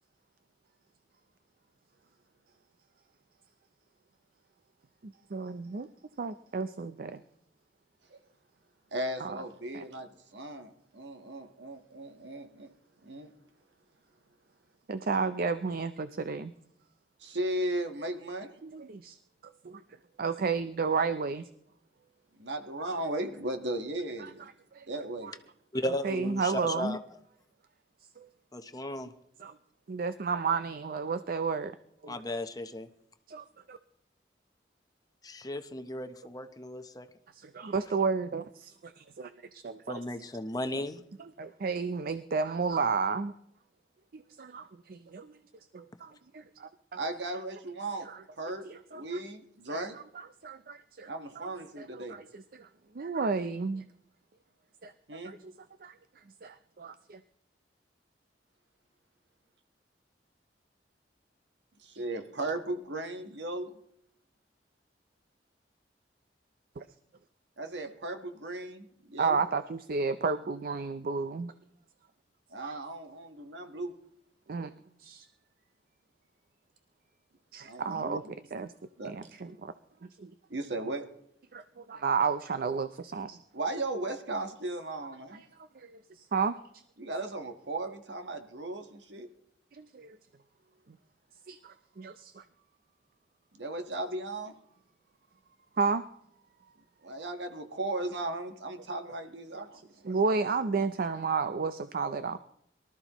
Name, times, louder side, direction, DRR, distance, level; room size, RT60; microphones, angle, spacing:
voice 1, 5.0-5.9 6.2-7.2 9.2-9.4 9.7-9.8 14.9-16.5 18.6-19.2 20.2-21.4 22.9-23.0 24.2-24.3 24.7-24.9 25.2-25.3 26.0-27.0 28.2-28.3 29.4-29.6 29.9-31.7 32.0-32.1 33.3-33.8 37.3-40.0 41.4-43.3 44.1-45.3 45.7-46.7 48.0-48.2 48.6-49.0 49.7-49.8 50.1-51.5 51.8-52.7 52.9-53.8 54.8-54.9 55.2-55.5 55.8-55.9 56.4-57.2 66.8-66.9 69.2-71.5 72.6-72.8 74.5-74.7 75.0-75.3 77.5-78.2 78.5-78.7 79.0-79.7 80.2-80.3 81.5-83.4 85.3-85.5 85.8-86.5 89.7-90.2 91.5-92.4 95.8-96.0 99.5-99.7 100.0-102.4, right 4 dB, 55° right, 11 dB, 0.5 m, -32 dB
voice 2, 8.9-12.7 13.0-13.3 17.2-18.5 22.4-24.4 24.9-25.3 47.0-48.1 48.4-48.7 48.9-50.0 51.1-52.1 55.1-55.3 61.8-63.8 67.6-69.4 72.5-73.9 77.6-78.2 79.0-79.1 80.5-81.0 83.5-85.4 87.0-89.3 93.6-94.6 97.0-100.0, right 2 dB, 80° right, 6 dB, 1.4 m, -36 dB
voice 3, 25.7-27.0 28.5-29.1 32.1-32.9 35.2-37.1 39.9-41.0, left 1 dB, 20° left, 9 dB, 0.8 m, -35 dB
23.0 x 13.0 x 3.0 m, 0.71 s
head